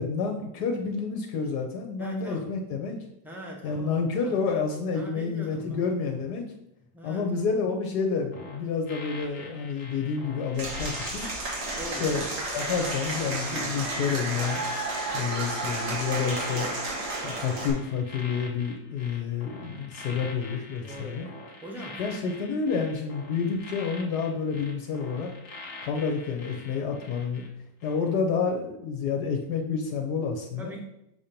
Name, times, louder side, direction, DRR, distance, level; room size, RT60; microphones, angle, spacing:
voice 1, 0.0-3.0 3.6-6.4 7.0-11.3 12.0-12.3 12.5-14.7 15.1-16.7 17.2-21.3 22.0-25.3 25.8-27.4 27.8-30.7, left 5 dB, 70° left, 2 dB, 1.2 m, -29 dB
voice 2, 2.0-2.5 3.2-4.4 4.9-5.8 6.8-7.5 11.8-12.2 15.1-15.5 20.8-21.2 21.6-22.0 30.6-30.8, right 1 dB, 5° right, -1 dB, 0.3 m, -42 dB
sound 1, 8.3-27.5 27.8-28.1, left 2 dB, 50° left, 1.4 m, -45 dB
Applause / Crowd, 10.6-17.7, right 2 dB, 90° right, 2.2 m, -32 dB
6.9 x 2.9 x 5.0 m, 0.82 s
omnidirectional pair, 1.9 m